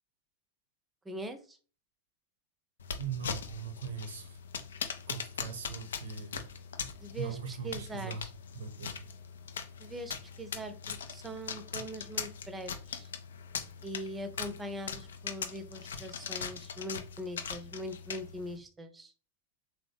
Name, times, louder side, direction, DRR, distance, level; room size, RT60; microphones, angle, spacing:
voice 1, 1.0-1.6 7.0-8.2 9.8-13.1 13.8-19.1, equal, 10° right, 0.6 m, -42 dB
sound 1, 2.8-18.6, left 6 dB, 65° left, 0.5 m, -41 dB
voice 2, 3.0-4.4 5.1-6.5 7.2-8.3 8.5-9.1, right 6 dB, 60° right, 0.7 m, -40 dB
3.7 x 3.0 x 3.2 m
figure-of-eight pair, 90°, 0 cm